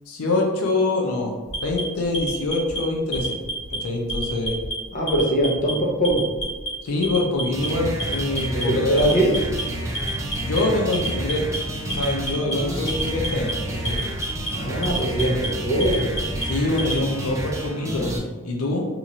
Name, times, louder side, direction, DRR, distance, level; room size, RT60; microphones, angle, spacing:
voice 1, 0.1-1.3 1.6-3.4 3.7-4.6 6.8-9.1 10.4-11.5 11.9-14.0 16.5-18.1 18.4-18.8, left 2 dB, 85° left, 0 dB, 0.5 m, -24 dB
Alarm, 1.5-2.8 3.1-3.8 4.1-4.7 5.1-5.7 6.0-6.7 7.0-7.7 8.0-8.6 9.0-9.6 9.9-10.6 10.9-11.6 11.9-12.5 12.9-13.5 13.8-14.5 14.8-15.5 15.8-17.0, right 2 dB, 55° left, 1.4 m, -29 dB
voice 2, 4.9-6.2 8.5-9.3 14.5-16.1, right 1 dB, 35° left, -2 dB, 0.7 m, -22 dB
sound 1, 7.5-18.2, right 1 dB, 15° right, 0.5 m, -30 dB
2.9 x 2.5 x 4.0 m, 1.3 s
head